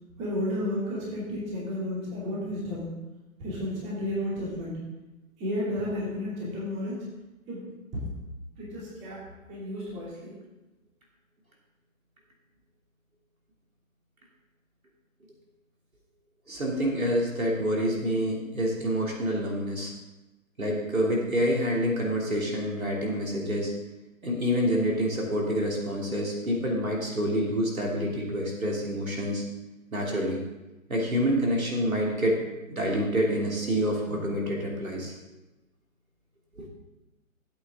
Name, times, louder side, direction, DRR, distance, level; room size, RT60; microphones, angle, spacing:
voice 1, 0.2-2.9 3.4-4.8 5.4-7.0 7.5-7.7 8.6-9.2 9.5-10.3, left 1 dB, 15° right, -6 dB, 2.7 m, -32 dB
voice 2, 16.5-19.9 20.6-23.7 24.2-29.4 29.9-30.4 30.9-32.4 32.7-35.1 36.6-36.7, equal, 80° right, -2 dB, 3.0 m, -27 dB
13.0 x 8.3 x 3.7 m, 1.0 s
figure-of-eight pair, 145°, 41 cm